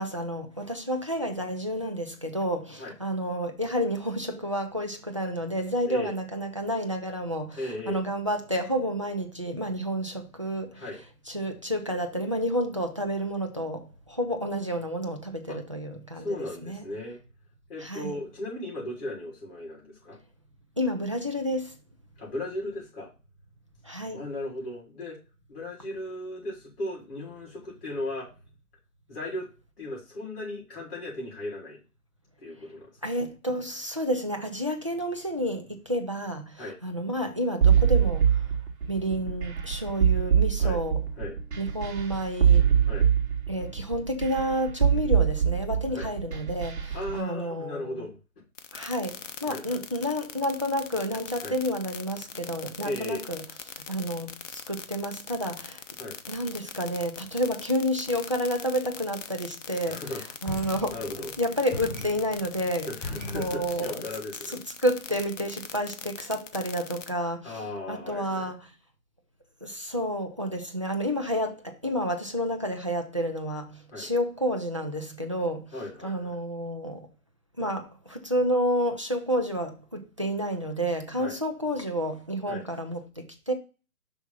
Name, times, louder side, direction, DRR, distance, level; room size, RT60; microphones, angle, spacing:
voice 1, 0.0-10.8 11.3-16.4 16.6-16.9 17.8-18.2 20.8-21.8 23.8-24.2 33.0-38.4 38.9-41.1 41.6-42.7 43.5-48.1 48.7-53.4 53.9-55.8 56.3-60.0 60.4-61.0 61.4-62.9 63.3-64.0 64.5-68.7 69.6-75.7 76.0-77.1 77.6-83.5, equal, 25° right, 0.4 m, -30 dB
voice 2, 7.6-8.0 10.7-11.0 15.5-15.6 16.2-17.2 17.7-20.2 22.2-23.1 24.1-25.2 25.5-28.3 29.1-29.5 29.8-31.8 32.4-32.9 36.6-36.8 40.6-40.8 41.2-41.4 42.9-43.0 45.9-46.1 46.9-48.2 49.5-49.8 51.4-51.5 52.8-53.2 56.0-56.2 59.9-60.2 60.5-61.3 62.9-64.6 67.4-68.5 73.9-74.1 75.7-76.3 81.2-81.4 82.5-82.6, left 1 dB, 40° left, 3.8 m, -36 dB
sound 1, 37.6-47.1, right 8 dB, 45° right, 1.9 m, -23 dB
sound 2, 48.6-67.1, left 7 dB, 55° left, 0.8 m, -41 dB
sound 3, 60.4-63.9, left 1 dB, 10° left, 2.9 m, -39 dB
5.9 x 3.5 x 5.4 m
hypercardioid pair, 150°, 44 cm